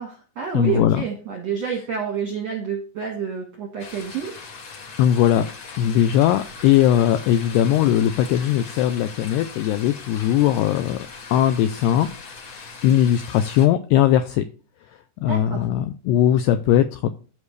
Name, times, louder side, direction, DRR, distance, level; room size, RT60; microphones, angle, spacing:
voice 1, 0.0-4.3 15.2-15.7, right 7 dB, 70° right, 2 dB, 1.6 m, -29 dB
voice 2, 0.5-1.0 5.0-5.5 5.8-12.1 12.8-14.5 15.2-17.1, left 11 dB, 85° left, 9 dB, 2.3 m, -19 dB
sound 1, 3.8-13.7, left 4 dB, 65° left, 1.6 m, -40 dB
14.5 x 5.4 x 3.2 m, 0.37 s
omnidirectional pair, 5.4 m